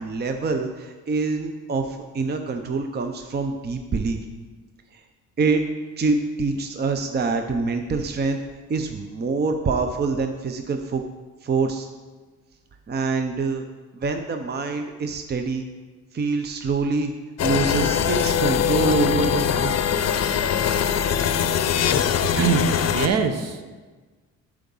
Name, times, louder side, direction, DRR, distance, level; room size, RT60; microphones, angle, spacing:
voice 1, 0.0-4.2 4.9-5.0 5.4-5.7 6.0-8.4 8.7-11.0 11.4-11.9 12.9-13.6 13.9-15.7 16.1-17.1 17.4-19.7, right 4 dB, 35° right, 6 dB, 0.7 m, -25 dB
sound 1, 17.4-23.1, left 8 dB, 60° left, 0.6 m, -22 dB
voice 2, 22.4-23.7, right 6 dB, 60° right, 7 dB, 0.9 m, -23 dB
8.6 x 4.8 x 5.5 m, 1.3 s
cardioid pair, 90°, 30 cm